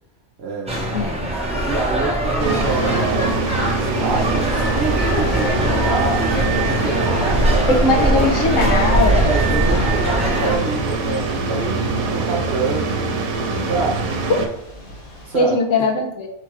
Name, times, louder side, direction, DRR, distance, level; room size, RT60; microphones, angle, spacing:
voice 1, 0.4-1.3 1.7-3.7 4.0-6.3 6.5-8.3 9.2-13.1 13.5-14.1 15.2-15.6, right 4 dB, 60° right, 1 dB, 0.7 m, -27 dB
sound 1, 0.7-10.6, right 1 dB, 5° right, 0.7 m, -21 dB
voice 2, 0.9-1.3 7.7-9.2 14.3-14.4 15.3-16.3, left 2 dB, 70° left, 2 dB, 1.1 m, -19 dB
sound 2, 2.4-14.5, right 3 dB, 80° right, 1.1 m, -24 dB
Thunder / Rain, 4.3-15.4, equal, 50° left, 1.5 m, -36 dB
4.7 x 2.3 x 4.6 m, 0.81 s
omnidirectional pair, 1.4 m